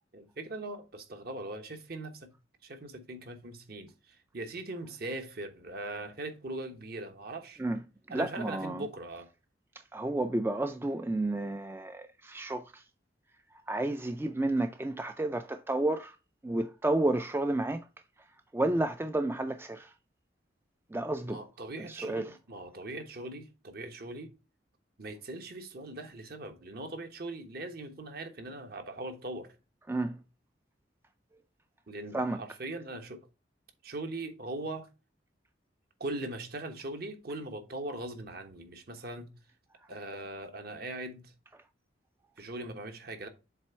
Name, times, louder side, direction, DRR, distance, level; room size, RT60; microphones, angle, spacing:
voice 1, 0.1-2.3 2.6-7.6 8.1-9.3 21.2-24.3 25.0-29.5 31.9-33.2 33.8-34.9 36.0-39.3 39.9-41.3 42.4-43.3, right 2 dB, 55° right, 1.1 m, -40 dB
voice 2, 8.1-8.8 9.9-12.8 13.7-16.2 16.4-17.8 18.5-19.9 20.9-21.4 21.9-22.3 29.9-30.2 32.1-32.4, right 2 dB, 10° right, 0.3 m, -31 dB
7.5 x 3.4 x 4.2 m
head